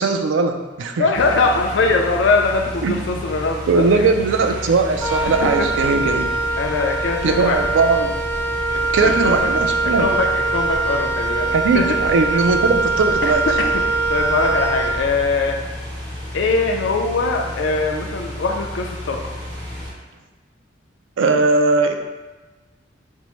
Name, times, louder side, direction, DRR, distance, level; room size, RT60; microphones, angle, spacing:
voice 1, 0.0-1.1 2.8-3.0 3.7-6.3 7.2-8.1 8.9-10.1 11.5-13.5 21.2-21.9, right 4 dB, 85° right, 5 dB, 0.4 m, -19 dB
voice 2, 1.0-4.1 5.4-5.7 6.6-7.6 9.0-9.4 9.8-12.0 13.5-13.8 14.1-15.5 16.3-19.2, left 3 dB, 75° left, 2 dB, 0.4 m, -21 dB
sound 1, 1.1-19.9, left 1 dB, 20° right, 0.9 m, -32 dB
Wind instrument woodwind instrument, 5.0-15.4, right 3 dB, 10° left, 0.9 m, -22 dB
4.3 x 2.0 x 3.0 m, 1.2 s
head